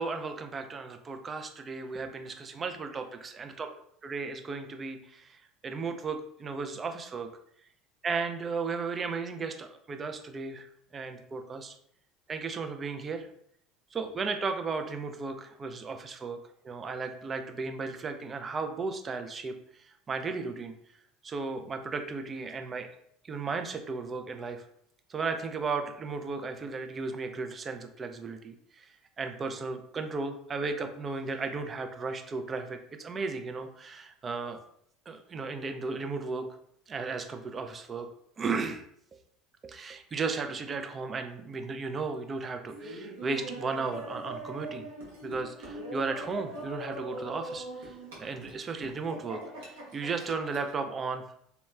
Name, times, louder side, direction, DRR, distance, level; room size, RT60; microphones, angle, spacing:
voice 1, 0.0-3.7 4.0-7.3 8.0-10.7 10.9-11.8 12.3-13.3 13.9-16.4 16.6-20.7 21.2-22.9 23.2-24.7 25.1-34.6 35.1-36.5 36.9-38.1 38.4-38.8 39.6-44.9 45.2-51.2, right 4 dB, 30° right, 6 dB, 0.4 m, -35 dB
Laughter, 42.7-50.8, right 1 dB, 80° right, 0.8 m, -42 dB
2.8 x 2.1 x 2.2 m, 0.69 s
hypercardioid pair, 80°, 0 cm